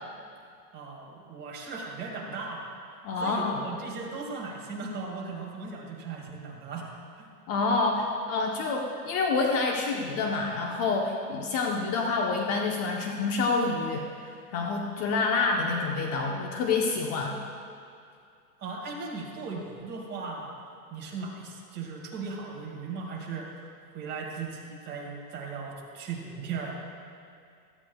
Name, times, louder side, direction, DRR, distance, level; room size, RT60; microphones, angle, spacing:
voice 1, 0.7-2.7 3.2-6.9 7.1-7.3 18.6-20.6 20.9-23.7 23.9-26.8, right 4 dB, 25° right, -2 dB, 2.2 m, -37 dB
voice 2, 3.0-3.6 7.5-14.1 14.5-17.4, left 3 dB, 30° left, 1 dB, 1.0 m, -27 dB
17.0 x 13.5 x 2.3 m, 2.3 s
hypercardioid pair, 135°, 46 cm